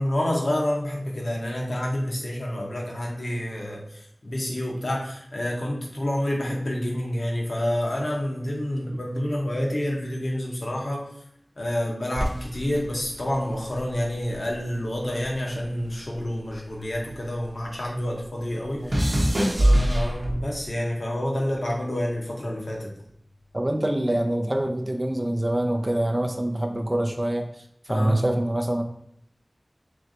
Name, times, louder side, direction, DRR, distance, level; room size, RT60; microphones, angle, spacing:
voice 1, 0.0-11.1 11.6-19.0 19.6-22.9 27.9-28.2, left 1 dB, 80° left, -2 dB, 1.0 m, -28 dB
sound 1, 12.1-14.7 14.9-17.6 17.9-20.7 21.4-21.8, equal, 70° right, 0.8 m, -25 dB
voice 2, 23.5-27.5 27.9-28.8, right 1 dB, 30° right, 3 dB, 0.5 m, -25 dB
3.2 x 3.2 x 3.9 m, 0.71 s
wide cardioid pair, 45°, 0 cm